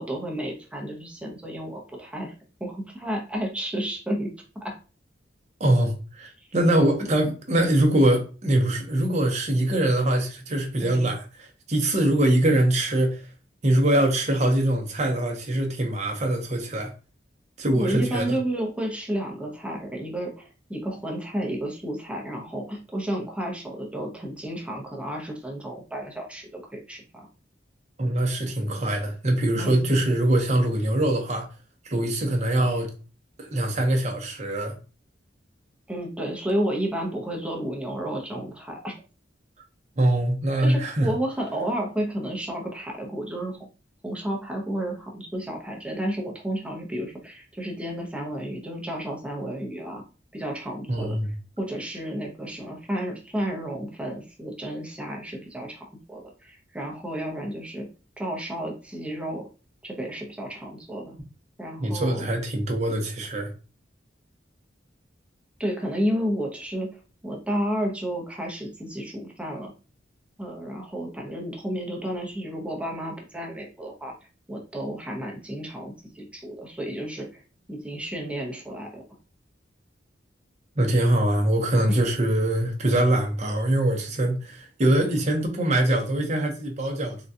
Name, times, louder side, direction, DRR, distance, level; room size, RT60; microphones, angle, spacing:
voice 1, 0.0-2.3 2.6-4.3 4.6-4.7 10.8-11.1 17.7-27.3 29.6-29.8 35.9-38.9 40.6-43.6 44.0-50.0 50.3-51.2 51.6-57.9 58.2-59.5 59.8-61.2 61.6-62.3 65.6-66.9 67.2-69.7 70.4-74.1 74.5-77.4 77.7-79.0 81.9-82.0, right 1 dB, 5° right, 0.7 m, -31 dB
voice 2, 5.6-11.2 11.7-13.3 13.6-16.9 17.6-18.4 28.0-31.5 31.8-32.9 33.4-34.8 40.0-41.1 50.9-51.3 61.8-63.5 80.8-87.2, right 1 dB, 40° right, 0.8 m, -23 dB
3.7 x 2.3 x 2.6 m
head